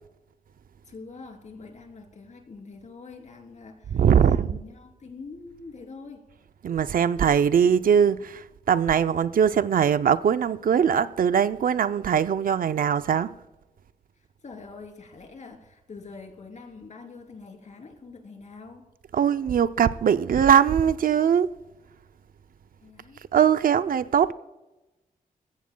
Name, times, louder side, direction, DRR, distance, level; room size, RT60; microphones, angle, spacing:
voice 1, 0.8-6.2 14.2-18.8 22.8-23.2, left 4 dB, 50° left, 3.2 m, -44 dB
voice 2, 3.9-4.6 6.6-13.4 19.1-21.6 23.3-24.3, right 8 dB, 70° right, 0.5 m, -21 dB
20.5 x 16.0 x 2.2 m
wide cardioid pair, 110°, 15 cm